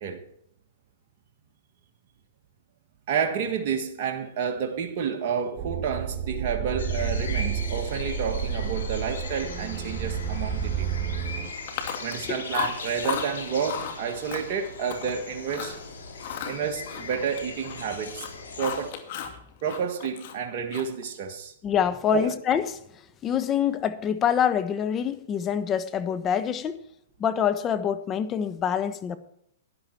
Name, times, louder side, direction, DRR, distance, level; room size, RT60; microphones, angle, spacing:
voice 1, 3.1-11.1 12.0-15.8 16.5-18.3 18.6-19.0 19.6-21.5 22.1-22.3, right 7 dB, 50° right, 1.6 m, -30 dB
sound 1, 5.6-11.5, right 7 dB, 30° right, 1.9 m, -30 dB
sound 2, 6.8-18.9, left 4 dB, 80° left, 3.3 m, -40 dB
Chewing mastication, 11.7-12.2 12.5-13.3 13.7-14.0 14.3-15.1 15.5-15.8 16.2-17.8 18.1-19.4 19.7-21.0, left 9 dB, 55° left, 2.4 m, -34 dB
voice 2, 21.6-22.6 23.2-26.8 27.2-29.2, left 8 dB, 25° left, 1.2 m, -25 dB
12.5 x 11.0 x 4.5 m
hypercardioid pair, 125°, 0 cm